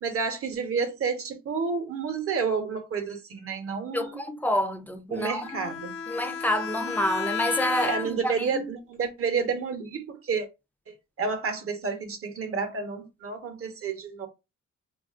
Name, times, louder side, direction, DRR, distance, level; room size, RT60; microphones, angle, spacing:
voice 1, 0.0-4.2 5.1-6.0 7.8-10.5 10.9-14.3, right 5 dB, 50° right, 0.8 m, -30 dB
voice 2, 3.9-5.7 6.1-8.7, left 1 dB, 5° left, 0.4 m, -28 dB
Bowed string instrument, 5.4-8.4, left 7 dB, 70° left, 0.7 m, -33 dB
3.1 x 2.4 x 2.4 m
cardioid pair, 90°, 30 cm